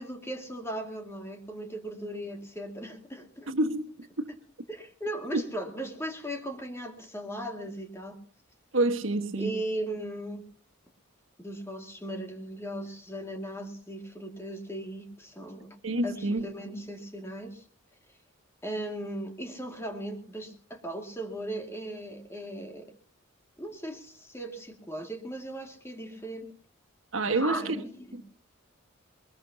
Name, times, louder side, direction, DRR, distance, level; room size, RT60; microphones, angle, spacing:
voice 1, 0.0-3.5 4.7-8.2 9.4-10.4 11.4-15.7 16.0-17.6 18.6-22.9 23.6-26.5 27.3-28.2, right 1 dB, 15° left, 2.3 m, -37 dB
voice 2, 3.5-4.3 5.3-5.4 8.7-9.5 15.8-16.4 27.1-27.8 28.1-28.3, right 2 dB, 70° right, 1.6 m, -28 dB
22.0 x 21.0 x 2.9 m
head